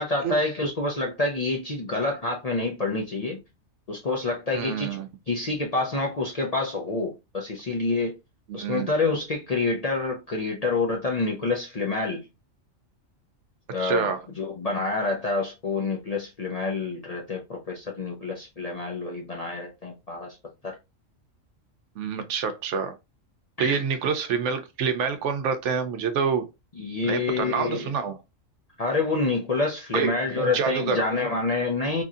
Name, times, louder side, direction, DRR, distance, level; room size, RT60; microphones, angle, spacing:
voice 1, 0.0-3.4 3.9-5.0 5.3-8.1 8.5-12.2 13.7-20.4 20.6-20.7 23.6-23.8 26.8-27.9 28.8-32.0, left 3 dB, 50° left, 0.5 m, -27 dB
voice 2, 4.5-5.1 8.5-8.9 13.8-14.2 22.0-22.9 23.6-26.5 27.0-28.1 29.9-31.0, right 6 dB, 70° right, 0.9 m, -27 dB
3.0 x 2.6 x 2.3 m
omnidirectional pair, 1.4 m